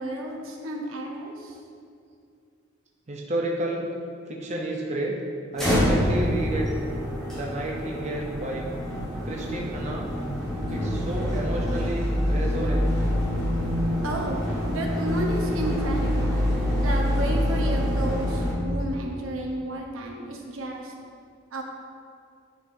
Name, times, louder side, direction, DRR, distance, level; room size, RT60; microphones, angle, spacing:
voice 1, 0.0-1.6 8.6-8.7 14.0-16.4 16.8-20.9 21.5-21.6, right 1 dB, 80° right, 0 dB, 0.8 m, -32 dB
voice 2, 3.1-3.9 4.3-5.1 5.5-6.7 7.3-8.7 9.2-10.1 10.7-13.0, right 1 dB, 35° right, -2 dB, 0.5 m, -30 dB
sound 1, 5.5-18.5, equal, ahead, 1.3 m, -26 dB
9.8 x 4.0 x 2.6 m, 2.4 s
head